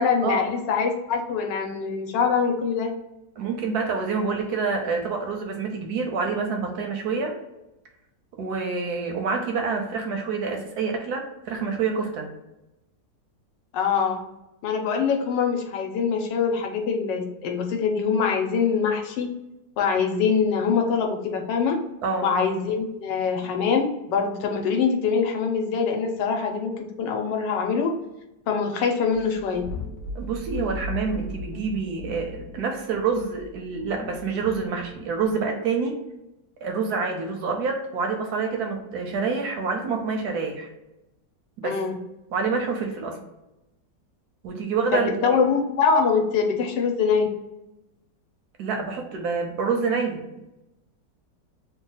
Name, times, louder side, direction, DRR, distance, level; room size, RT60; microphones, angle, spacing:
voice 1, 0.0-2.9 13.7-14.2 14.6-19.3 19.8-21.8 22.2-27.9 28.5-29.6 41.6-42.0 44.9-47.3, left 5 dB, 85° left, 3 dB, 1.3 m, -24 dB
voice 2, 3.4-7.4 8.4-12.3 22.0-22.3 30.1-36.0 36.6-40.7 41.6-41.8 42.3-43.2 44.4-45.4 48.6-50.3, right 5 dB, 70° right, 3 dB, 1.0 m, -27 dB
sound 1, 29.1-35.3, left 2 dB, 70° left, 0.7 m, -37 dB
3.0 x 2.2 x 3.9 m, 0.92 s
omnidirectional pair, 1.9 m